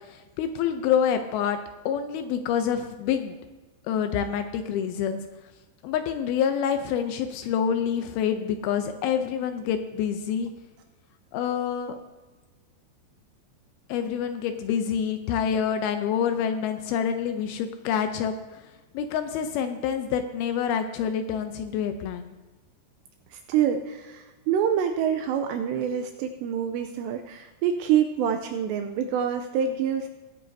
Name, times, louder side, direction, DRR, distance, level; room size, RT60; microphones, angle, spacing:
voice 1, 0.1-1.6 1.9-3.4 3.9-5.2 5.8-10.5 11.3-12.0 13.9-18.6 18.9-22.3, left 8 dB, 90° left, 7 dB, 2.1 m, -27 dB
voice 2, 23.3-30.1, right 8 dB, 80° right, 5 dB, 2.7 m, -26 dB
21.0 x 9.6 x 2.7 m, 1.2 s
omnidirectional pair, 5.3 m